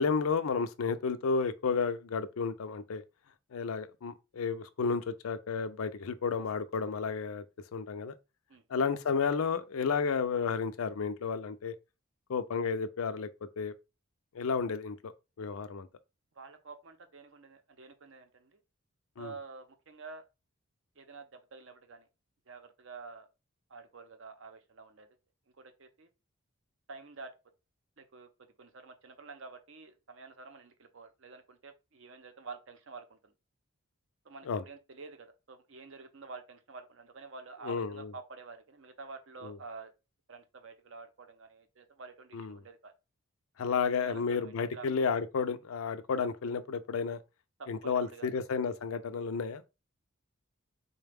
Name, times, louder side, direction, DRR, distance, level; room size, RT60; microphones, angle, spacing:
voice 1, 0.0-3.0 3.5-7.4 7.7-8.1 8.7-11.7 12.3-13.3 13.6-13.7 14.3-15.1 15.4-15.9 19.2-19.3 34.5-34.6 37.6-38.1 39.4-39.5 42.3-42.6 43.6-47.2 47.7-49.6, left 5 dB, 75° left, 0.4 m, -32 dB
voice 2, 16.3-18.6 19.2-20.3 21.0-22.1 22.5-23.3 23.7-25.1 25.5-26.1 26.9-27.3 28.0-28.3 28.6-33.3 34.2-39.9 40.3-42.9 43.9-44.9 47.6-48.3, right 4 dB, 60° right, 0.6 m, -49 dB
3.9 x 2.2 x 3.4 m
head